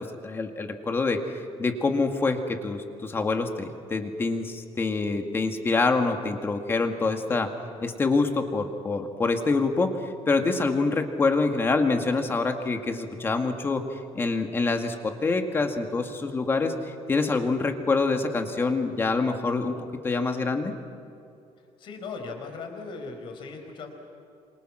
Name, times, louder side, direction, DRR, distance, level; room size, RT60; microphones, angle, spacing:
voice 1, 0.2-7.5 7.8-19.8 20.0-20.7, left 3 dB, 20° left, 5 dB, 1.9 m, -26 dB
voice 2, 21.8-23.9, left 4 dB, 45° left, 4 dB, 4.6 m, -38 dB
27.5 x 27.0 x 6.2 m, 2.6 s
cardioid pair, 175°, 12 cm